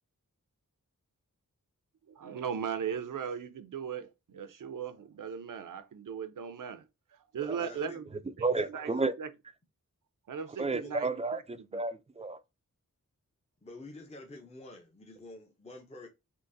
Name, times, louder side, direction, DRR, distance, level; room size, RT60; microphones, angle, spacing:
voice 1, 2.1-6.9 7.1-8.1 8.7-8.9 9.2-9.3 10.3-11.4 11.7-11.8, right 7 dB, 70° right, 0.5 m, -38 dB
voice 2, 7.6-8.1 8.5-9.1 10.7-10.9 13.6-16.1, left 2 dB, 20° left, 0.6 m, -49 dB
voice 3, 8.4-9.1 10.6-12.4, right 3 dB, 20° right, 0.3 m, -32 dB
3.8 x 2.5 x 2.5 m
wide cardioid pair, 60°, 33 cm